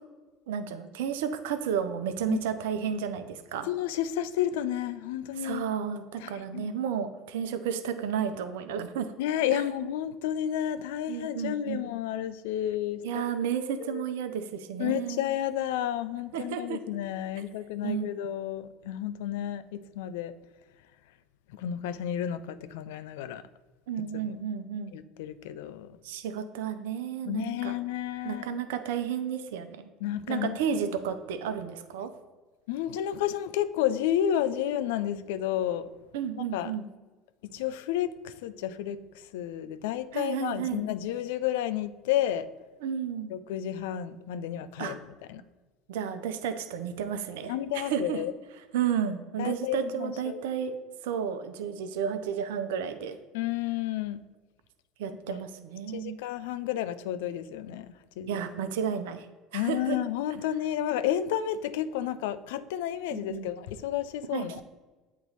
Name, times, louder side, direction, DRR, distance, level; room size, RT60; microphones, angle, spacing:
voice 1, 0.5-3.7 5.4-9.1 9.5-9.6 11.1-11.8 13.0-15.2 16.3-16.8 17.8-18.1 23.9-25.0 26.0-27.7 28.2-29.9 30.3-32.1 36.1-36.9 40.1-40.8 42.8-43.3 44.8-45.0 45.9-48.2 48.7-50.8 51.0-53.2 55.0-56.2 58.3-59.3 59.5-60.0 63.1-63.5 64.3-64.5, right 8 dB, 80° right, 9 dB, 0.5 m, -32 dB
voice 2, 3.6-5.6 6.2-6.7 9.2-13.3 13.8-14.0 14.8-20.3 21.5-23.4 24.1-24.4 24.9-26.0 27.3-28.6 30.0-30.9 32.7-35.9 36.5-36.7 37.4-42.5 43.3-45.4 47.5-48.3 49.4-50.4 53.3-54.2 55.3-55.4 55.9-58.4 59.5-64.6, left 11 dB, 75° left, 13 dB, 0.3 m, -31 dB
8.2 x 3.0 x 4.0 m, 1.3 s
hypercardioid pair, 75°, 0 cm